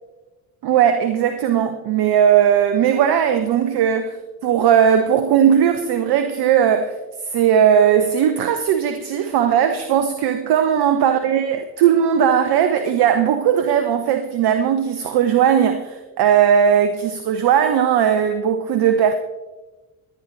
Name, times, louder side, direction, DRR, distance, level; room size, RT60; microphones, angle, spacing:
voice 1, 0.6-4.2 4.4-7.0 7.3-19.1, right 8 dB, 60° right, 1.0 m, -17 dB
26.5 x 9.7 x 3.3 m
hypercardioid pair, 45°, 44 cm